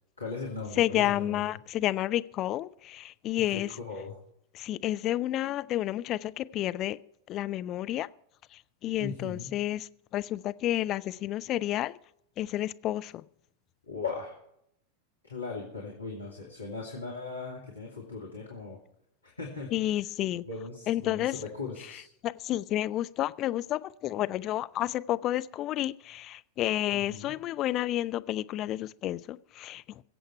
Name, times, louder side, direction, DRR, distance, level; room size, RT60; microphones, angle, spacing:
voice 1, 0.2-1.5 3.4-4.1 9.0-9.6 13.9-14.4 15.2-18.8 19.2-20.0 20.5-22.1 26.9-27.4, left 4 dB, 80° left, 2.5 m, -38 dB
voice 2, 0.8-3.7 4.5-7.0 7.3-8.1 8.5-12.0 12.4-13.2 19.7-20.4 20.9-21.3 22.4-30.0, left 14 dB, 35° left, 0.5 m, -30 dB
22.0 x 7.9 x 4.5 m
figure-of-eight pair, 90°, 0 cm